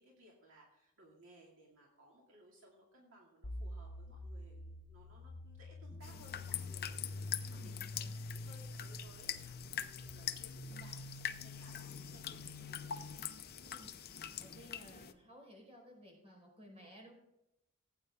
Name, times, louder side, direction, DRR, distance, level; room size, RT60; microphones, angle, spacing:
voice 1, 0.0-13.2, right 1 dB, 65° right, -2 dB, 2.4 m, -62 dB
sound 1, 3.4-13.2, left 2 dB, 70° left, 1.1 m, -47 dB
Big ugly bendy chords, 5.9-9.7, right 1 dB, 5° right, 1.6 m, -65 dB
sound 2, 6.0-15.1, left 9 dB, 45° left, 0.7 m, -44 dB
voice 2, 7.4-8.2 13.6-17.1, equal, 30° right, 0 dB, 4.6 m, -57 dB
16.5 x 8.9 x 3.6 m, 0.84 s
head